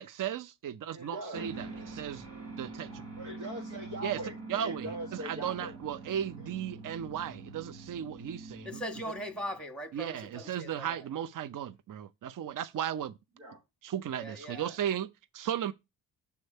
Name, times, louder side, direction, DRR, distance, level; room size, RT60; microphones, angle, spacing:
voice 1, 0.0-2.3 2.6-3.0 4.0-4.2 4.5-8.8 9.9-13.2 13.8-15.1 15.3-15.7, right 10 dB, 45° right, 0.6 m, -35 dB
voice 2, 0.9-1.5 3.2-5.8 13.4-13.6 14.5-14.6, right 1 dB, 90° right, 1.9 m, -41 dB
sound 1, 1.3-9.6, right 3 dB, 60° right, 1.7 m, -45 dB
voice 3, 8.6-11.1 14.1-14.7, equal, ahead, 1.5 m, -40 dB
7.0 x 3.1 x 5.3 m
supercardioid pair, 45°, 47 cm